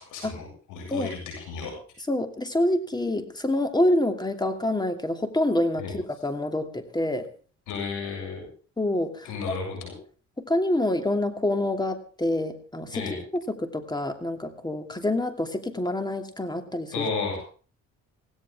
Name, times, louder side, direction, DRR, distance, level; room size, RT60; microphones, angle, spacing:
voice 1, 0.0-1.7 5.8-5.9 7.7-8.5 9.2-9.9 12.9-13.2 16.9-17.4, left 4 dB, 85° left, 1 dB, 7.2 m, -33 dB
voice 2, 2.1-7.3 8.8-9.3 10.4-13.0 13.6-17.1, left 1 dB, 15° left, 6 dB, 2.7 m, -26 dB
17.0 x 17.0 x 3.6 m, 0.40 s
cardioid pair, 90°, 30 cm